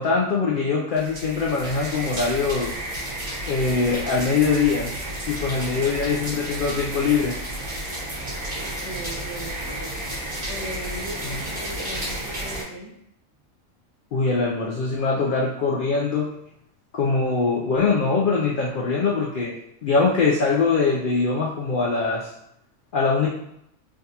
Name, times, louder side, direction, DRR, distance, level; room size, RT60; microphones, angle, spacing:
voice 1, 0.0-2.7 3.5-4.9 5.3-7.3 11.2-11.4 14.1-16.3 16.9-19.5 19.8-22.3 22.9-23.3, left 4 dB, 80° left, -4 dB, 0.4 m, -22 dB
sound 1, 0.9-12.6, right 1 dB, 40° right, 1.4 m, -32 dB
voice 2, 5.5-6.0 8.6-10.0 10.5-12.9, right 1 dB, 55° right, -7 dB, 1.4 m, -38 dB
3.5 x 2.3 x 2.7 m, 0.78 s
omnidirectional pair, 1.4 m